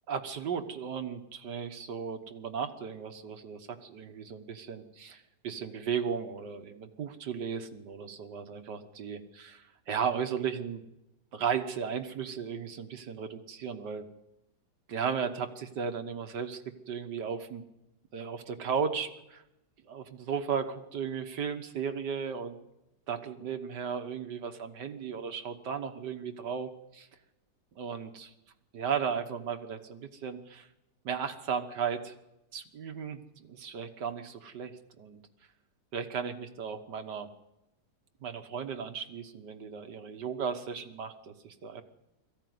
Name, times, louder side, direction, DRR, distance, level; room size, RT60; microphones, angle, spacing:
voice 1, 0.1-10.8 11.3-14.1 14.9-16.6 16.9-17.6 18.1-19.4 19.9-22.6 23.1-26.7 27.8-28.3 28.7-30.7 31.1-32.1 32.5-35.2 35.9-37.3 38.2-41.8, right 7 dB, 75° right, 7 dB, 1.8 m, -35 dB
22.5 x 15.0 x 9.4 m, 0.92 s
omnidirectional pair, 1.8 m